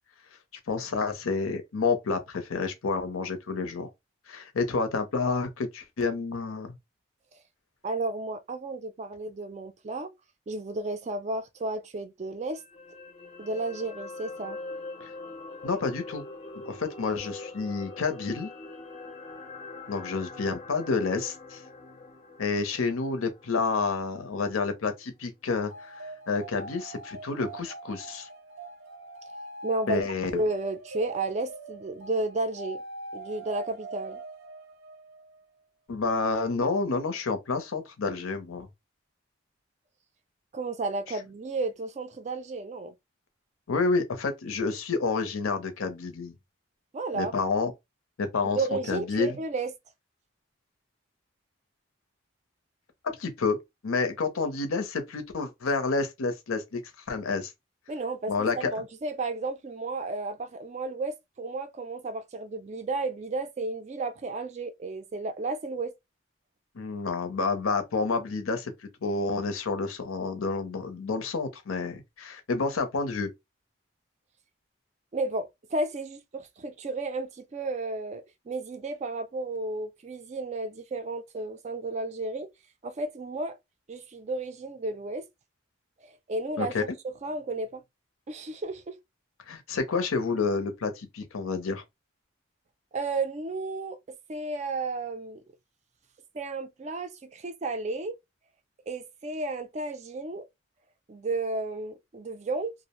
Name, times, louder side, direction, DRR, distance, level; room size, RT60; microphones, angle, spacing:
voice 1, 0.7-3.9 4.3-6.8 15.0-15.1 15.6-16.2 16.6-18.5 19.9-21.6 22.4-28.3 29.9-30.3 35.9-38.7 43.7-46.3 47.1-47.7 48.2-49.3 53.0-56.8 57.1-57.5 58.3-58.7 66.8-68.7 69.0-73.3 86.6-86.8 89.5-91.8, left 4 dB, 90° left, 0.6 m, -29 dB
voice 2, 7.8-10.1 10.5-12.6 13.4-14.6 29.6-30.0 30.3-32.8 33.1-34.2 40.5-43.0 46.9-47.3 48.4-49.7 57.9-65.9 75.1-82.5 82.8-83.6 83.9-85.2 86.0-86.7 87.2-87.8 88.3-89.0 92.9-95.4 96.3-98.2 98.9-100.4 101.1-102.7, right 2 dB, 35° right, 0.3 m, -33 dB
sound 1, 12.5-24.8 25.2-25.3, left 3 dB, 30° left, 0.5 m, -43 dB
sound 2, 25.7-35.4, right 2 dB, 90° right, 0.6 m, -43 dB
2.5 x 2.0 x 2.9 m
head